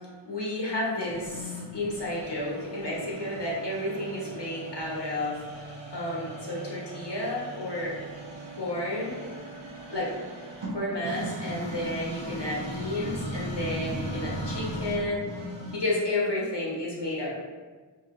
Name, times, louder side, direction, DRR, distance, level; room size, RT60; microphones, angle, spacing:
voice 1, 0.3-8.0 8.5-9.2 9.9-10.1 10.7-17.3, left 1 dB, 65° left, -5 dB, 1.2 m, -31 dB
sound 1, 1.0-16.0, right 1 dB, 80° right, 1.0 m, -38 dB
4.5 x 2.8 x 2.6 m, 1.4 s
wide cardioid pair, 45°, 44 cm